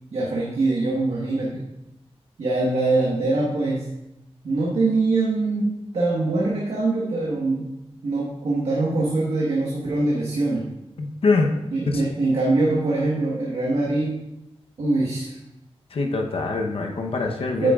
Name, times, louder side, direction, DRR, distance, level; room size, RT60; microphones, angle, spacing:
voice 1, 0.1-1.6 2.4-3.8 4.4-7.7 8.0-10.7 11.7-14.2 14.8-15.4 17.6-17.7, right 2 dB, 85° right, -5 dB, 1.4 m, -23 dB
voice 2, 11.0-11.5 11.9-12.1 15.9-17.7, left 3 dB, 60° left, 2 dB, 0.9 m, -24 dB
9.9 x 8.6 x 2.4 m, 0.92 s
wide cardioid pair, 165°, 11 cm